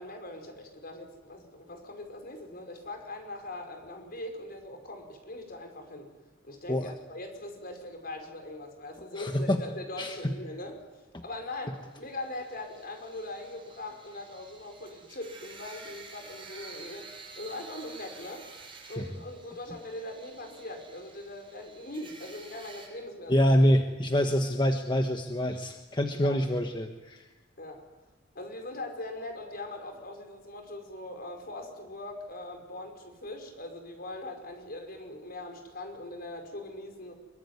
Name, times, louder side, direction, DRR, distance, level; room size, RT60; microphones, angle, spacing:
voice 1, 0.0-6.1 6.4-10.8 11.2-18.5 18.9-23.4 26.1-26.4 27.6-27.8 28.4-37.1, left 2 dB, 55° left, 4 dB, 5.4 m, -41 dB
voice 2, 9.2-9.6 10.0-10.1 11.1-11.2 19.0-19.1 23.3-27.3, equal, 25° left, 5 dB, 1.4 m, -26 dB
sound 1, 11.9-22.9, right 4 dB, 30° right, 6.5 m, -50 dB
24.0 x 23.0 x 9.8 m, 1.2 s
head